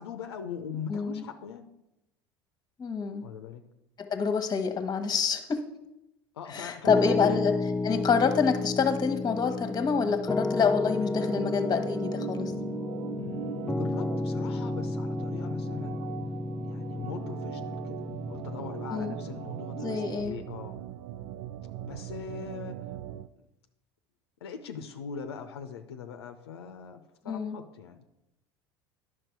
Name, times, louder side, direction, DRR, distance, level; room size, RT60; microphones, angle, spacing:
voice 1, 0.0-1.6 3.2-3.6 6.3-7.4 13.2-16.0 16.7-20.8 21.8-22.8 24.4-28.0, left 7 dB, 80° left, 7 dB, 0.7 m, -41 dB
voice 2, 0.9-1.2 2.8-3.3 4.0-5.6 6.5-7.5 7.8-12.5 18.9-19.1 19.8-20.4 27.3-27.6, left 5 dB, 30° left, 8 dB, 1.1 m, -27 dB
Piano, 6.9-20.2, left 2 dB, 5° left, 0.3 m, -32 dB
Organ, 11.1-23.3, right 11 dB, 65° right, 0.4 m, -40 dB
10.5 x 6.1 x 4.6 m, 0.90 s
hypercardioid pair, 75°, 13 cm